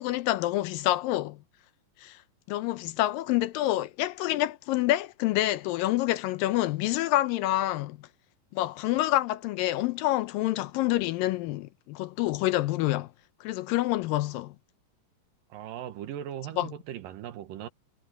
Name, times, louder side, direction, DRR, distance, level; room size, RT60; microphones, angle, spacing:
voice 1, 0.0-1.4 2.0-2.2 2.5-8.0 8.5-13.1 13.4-14.5 16.6-16.7, left 15 dB, 80° left, 2.3 m, -27 dB
voice 2, 15.5-17.7, right 11 dB, 70° right, 2.7 m, -38 dB
omnidirectional pair, 4.2 m